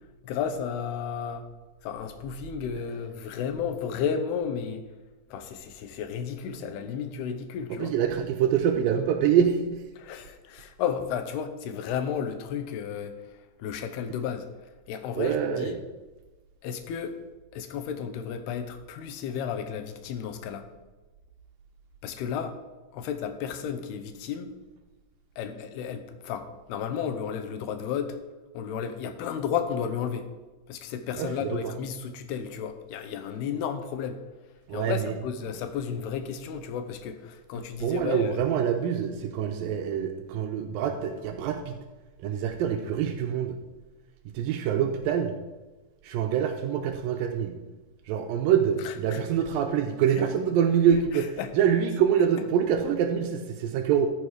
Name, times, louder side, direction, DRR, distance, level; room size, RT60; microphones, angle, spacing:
voice 1, 0.2-1.4 1.8-4.8 5.3-7.9 10.0-14.5 14.9-15.8 16.6-17.2 17.5-20.7 22.0-22.5 22.9-24.5 25.4-28.2 28.5-30.3 30.7-34.2 34.7-38.3 48.8-49.2 50.2-50.3 51.1-51.5, left 7 dB, 75° left, 8 dB, 2.8 m, -33 dB
voice 2, 7.8-9.8 15.2-15.8 31.2-31.7 34.7-35.1 37.8-41.8 42.2-43.6 44.3-45.4 46.0-47.6 48.1-54.1, right 8 dB, 90° right, 4 dB, 2.0 m, -25 dB
14.0 x 7.3 x 4.9 m, 1.2 s
omnidirectional pair, 5.0 m